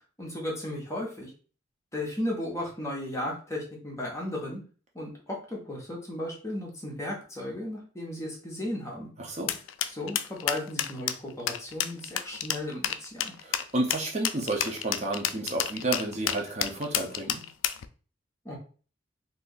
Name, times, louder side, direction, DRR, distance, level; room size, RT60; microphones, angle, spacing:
voice 1, 0.2-1.3 1.9-4.6 4.9-9.1 9.9-13.3 18.4-18.6, left 1 dB, 15° left, -2 dB, 0.8 m, -35 dB
voice 2, 9.2-9.5 13.4-17.5, right 2 dB, 35° right, 0 dB, 0.6 m, -31 dB
sound 1, 9.5-17.9, left 10 dB, 80° left, 0.3 m, -29 dB
2.6 x 2.4 x 3.8 m, 0.39 s
head